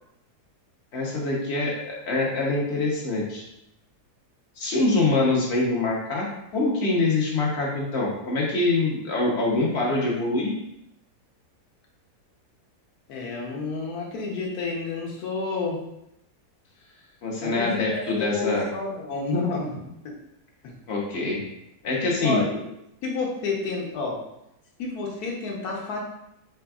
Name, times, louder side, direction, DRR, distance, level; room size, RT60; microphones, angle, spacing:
voice 1, 0.9-3.4 4.6-6.3 6.5-10.5 17.2-18.7 20.9-21.4 21.8-22.4, left 2 dB, 50° left, -2 dB, 0.9 m, -24 dB
voice 2, 13.1-15.8 17.4-19.8 21.8-21.9 22.2-22.6 23.0-24.2 24.8-26.0, left 3 dB, 70° left, -1 dB, 1.3 m, -30 dB
3.9 x 3.4 x 2.3 m, 0.82 s
omnidirectional pair, 1.7 m